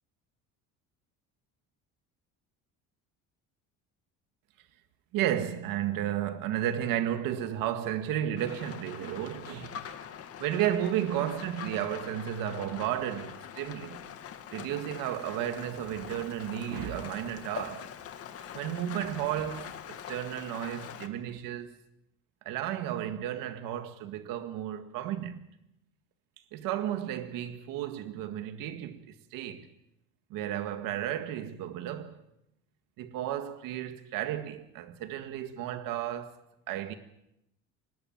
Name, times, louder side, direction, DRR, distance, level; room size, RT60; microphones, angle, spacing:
voice 1, 5.1-9.8 10.4-14.0 14.5-17.9 18.4-21.7 22.5-25.4 26.5-29.7 30.3-32.2 33.0-36.4 36.7-37.0, right 11 dB, 75° right, 1.9 m, -33 dB
Rain, 8.4-21.1, left 8 dB, 45° left, 2.2 m, -44 dB
25.5 x 20.0 x 7.4 m
cardioid pair, 155°, 34 cm